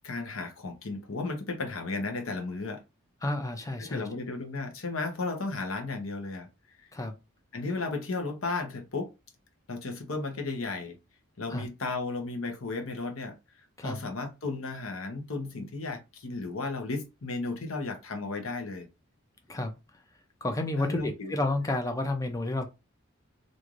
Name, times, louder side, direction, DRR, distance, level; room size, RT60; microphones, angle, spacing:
voice 1, 0.0-2.8 3.8-6.5 7.5-9.1 9.7-11.0 11.4-13.3 13.8-18.9 20.8-21.3, left 3 dB, 70° left, 0.8 m, -34 dB
voice 2, 3.2-4.1 6.9-7.2 11.5-11.7 13.8-14.0 19.5-19.7 20.4-22.7, left 2 dB, 15° left, 0.5 m, -31 dB
3.1 x 2.6 x 2.4 m
head